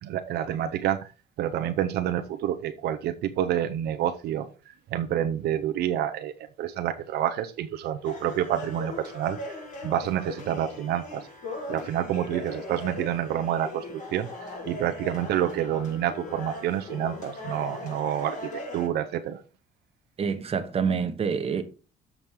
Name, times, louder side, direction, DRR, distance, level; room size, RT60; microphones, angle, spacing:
voice 1, 0.0-1.0 1.4-9.4 9.8-11.3 11.7-13.8 14.1-14.3 14.6-18.4 18.7-19.4, right 11 dB, 75° right, 0.8 m, -28 dB
sound 1, 8.0-18.9, left 2 dB, 50° left, 4.8 m, -39 dB
voice 2, 20.2-21.6, right 6 dB, 35° right, 1.2 m, -27 dB
7.4 x 5.2 x 4.7 m
cardioid pair, 110°, 17 cm